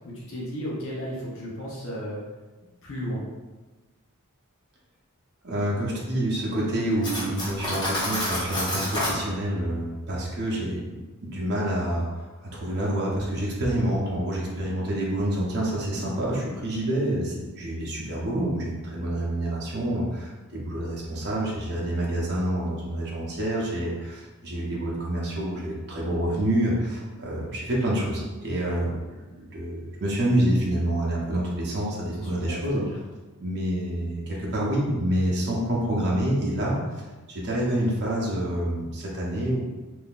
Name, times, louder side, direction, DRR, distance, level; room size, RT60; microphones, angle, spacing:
voice 1, 0.0-2.2 2.8-3.2 32.4-33.0, equal, 60° left, -5 dB, 0.7 m, -34 dB
voice 2, 5.4-29.0 29.4-32.8 33.4-36.8 37.3-39.6, right 1 dB, 50° right, -5 dB, 0.6 m, -27 dB
Cutlery silverware, 7.0-9.2, left 1 dB, 20° left, 0.9 m, -28 dB
3.6 x 2.6 x 2.4 m, 1.2 s
head